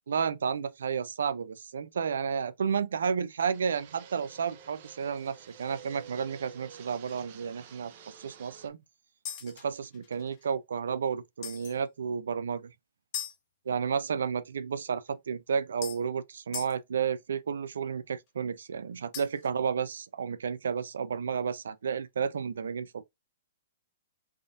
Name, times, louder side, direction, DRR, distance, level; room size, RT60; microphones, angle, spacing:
voice 1, 0.1-8.8 9.4-12.7 13.7-23.0, right 6 dB, 85° right, 0.4 m, -32 dB
Fixed-wing aircraft airplane, 3.5-8.7, right 8 dB, 45° right, 0.6 m, -50 dB
sound 1, 5.3-5.5 6.0-6.2 6.4-6.6 7.1-7.2 9.3-10.5 11.4-11.8 13.1-13.4 15.1-15.2 15.8-16.0 16.5-16.8 19.1-19.5, left 8 dB, 35° left, 0.8 m, -40 dB
3.5 x 2.6 x 2.4 m
hypercardioid pair, 160°, 0 cm